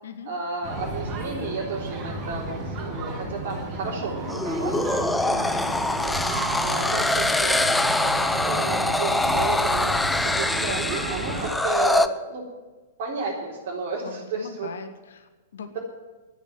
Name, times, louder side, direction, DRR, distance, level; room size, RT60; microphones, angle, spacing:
voice 1, 0.3-5.4 5.7-6.2 6.6-7.6 7.9-12.5 13.0-14.7, right 4 dB, 45° right, -6 dB, 4.2 m, -32 dB
sound 1, 0.6-11.5, right 2 dB, 30° right, 6.2 m, -32 dB
sound 2, 4.3-12.1, left 2 dB, 5° left, 0.7 m, -24 dB
voice 2, 5.3-5.7 14.0-15.8, left 6 dB, 65° left, 9 dB, 1.6 m, -40 dB
12.0 x 10.5 x 9.4 m, 1.3 s
figure-of-eight pair, 105°, 0 cm